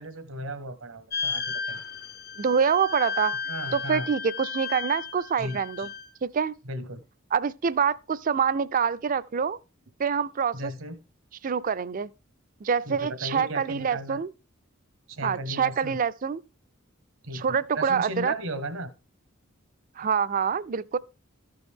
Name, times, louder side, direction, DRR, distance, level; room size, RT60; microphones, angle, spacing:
voice 1, 0.0-1.8 3.5-4.1 5.4-5.9 6.6-7.0 10.5-11.0 12.8-14.2 15.1-16.0 17.2-18.9, right 1 dB, 85° right, 1.3 m, -35 dB
sound 1, 1.1-6.1, left 5 dB, 50° left, 0.6 m, -34 dB
voice 2, 2.4-3.4 3.7-5.9 6.2-6.5 7.3-9.6 10.0-10.7 11.4-12.1 12.6-14.3 15.2-16.4 17.3-18.3 20.0-21.0, right 6 dB, 40° right, 0.4 m, -26 dB
13.5 x 5.3 x 3.6 m
head